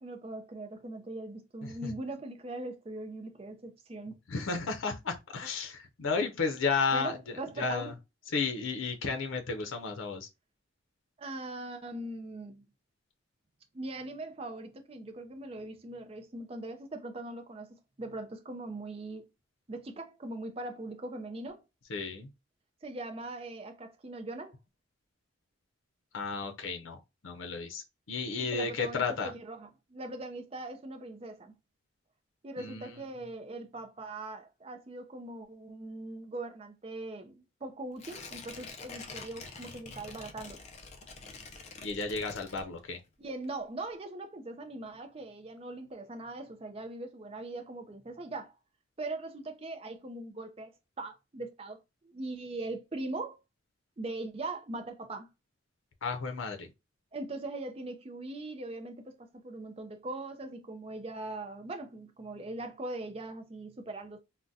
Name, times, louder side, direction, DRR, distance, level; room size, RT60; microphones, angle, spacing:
voice 1, 0.0-4.2 6.9-7.9 11.2-12.6 13.7-19.3 19.7-21.6 22.8-24.6 28.2-31.5 32.4-40.6 43.2-48.5 49.0-53.4 54.0-55.3 57.1-64.2, right 2 dB, 30° right, 0.4 m, -41 dB
voice 2, 1.6-1.9 4.3-7.9 8.3-10.3 21.9-22.3 26.1-29.3 32.6-33.0 41.8-43.0 56.0-56.7, left 4 dB, 80° left, 0.6 m, -33 dB
Tearing, 38.0-43.1 43.4-43.5, left 4 dB, 35° left, 0.4 m, -46 dB
3.7 x 2.1 x 2.6 m
head